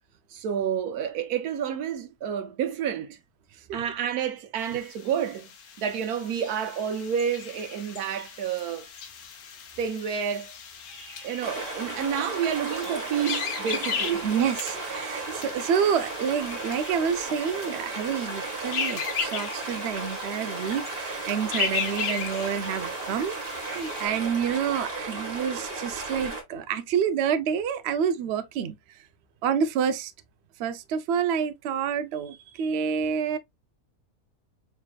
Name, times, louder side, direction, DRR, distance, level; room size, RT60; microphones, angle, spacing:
voice 1, 0.3-3.2 3.7-5.5 5.8-8.9 9.8-10.5 11.2-14.3, right 8 dB, 85° right, 1.3 m, -29 dB
sound 1, 4.6-24.1, left 6 dB, 80° left, 1.3 m, -37 dB
voice 2, 10.9-11.5 14.2-28.8 29.4-30.1 30.6-33.4, right 7 dB, 65° right, 0.7 m, -28 dB
sound 2, 11.4-26.4, right 3 dB, 45° right, 1.3 m, -35 dB
4.6 x 3.3 x 2.2 m
omnidirectional pair, 1.6 m